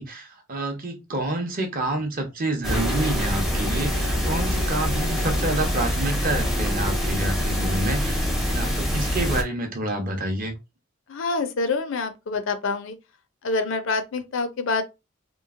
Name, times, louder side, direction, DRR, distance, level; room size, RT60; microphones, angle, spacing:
voice 1, 0.0-10.5, right 2 dB, 40° right, 0.7 m, -28 dB
sound 1, 2.6-9.4, equal, ahead, 0.5 m, -25 dB
voice 2, 11.1-12.9 13.4-14.8, left 3 dB, 65° left, 0.4 m, -26 dB
3.0 x 2.4 x 2.4 m
head